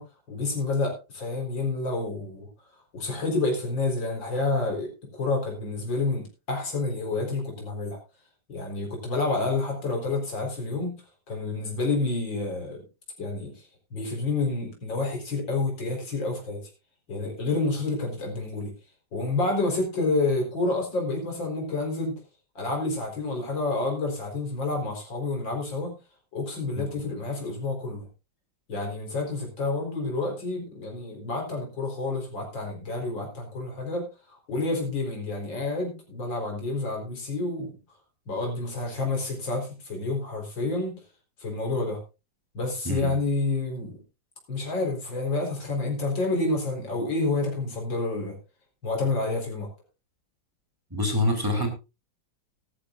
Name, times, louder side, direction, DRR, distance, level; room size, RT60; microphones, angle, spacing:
voice 1, 0.0-2.5 2.9-8.0 8.5-11.0 11.3-12.8 13.2-13.7 13.9-16.6 17.1-18.7 19.1-22.2 22.5-25.9 26.3-28.1 28.7-37.8 38.3-40.9 41.4-42.0 42.5-44.0 44.5-48.4 48.8-49.7, left 3 dB, 75° left, 1 dB, 4.9 m, -29 dB
voice 2, 50.9-51.7, left 1 dB, 10° right, 2 dB, 3.6 m, -25 dB
17.5 x 13.0 x 2.5 m, 0.28 s
omnidirectional pair, 2.0 m